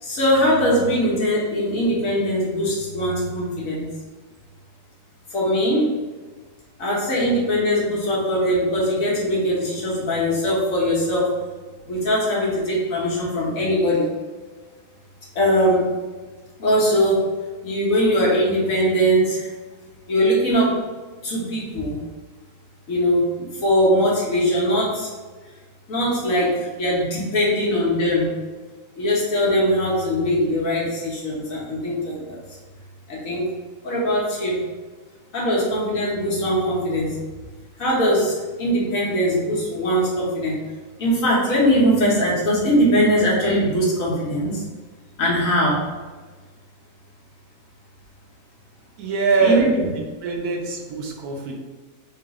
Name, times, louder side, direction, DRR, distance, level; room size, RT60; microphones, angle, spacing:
voice 1, 0.0-3.9 5.3-5.9 6.8-11.3 11.8-14.1 15.3-15.9 16.6-17.2 17.6-19.5 20.1-20.8 21.2-22.0 22.9-25.1 25.9-28.3 29.0-32.4 33.1-33.5 33.8-34.6 35.3-37.2 37.8-40.6 41.0-44.6 45.2-45.8 49.4-49.9, equal, 65° left, -5 dB, 1.6 m, -21 dB
voice 2, 49.0-49.9 50.2-51.5, right 4 dB, 90° right, 0 dB, 1.3 m, -22 dB
3.8 x 3.0 x 3.7 m, 1.3 s
omnidirectional pair, 1.6 m